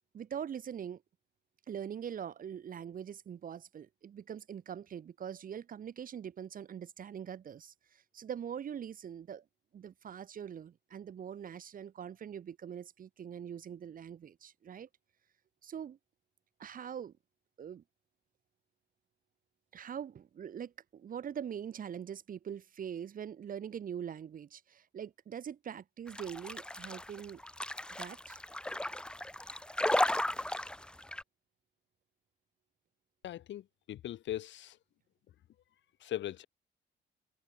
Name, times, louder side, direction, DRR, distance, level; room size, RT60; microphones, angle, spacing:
voice 1, 0.1-1.0 1.7-9.4 9.7-14.9 15.6-16.0 16.6-17.1 17.6-17.8 19.7-27.4 28.0-28.4, right 8 dB, 45° right, 0.7 m, -43 dB
sound 1, 26.1-31.2, left 1 dB, 5° left, 0.5 m, -34 dB
voice 2, 33.2-34.8 36.0-36.4, left 12 dB, 65° left, 0.8 m, -40 dB
cardioid pair, 90°, 20 cm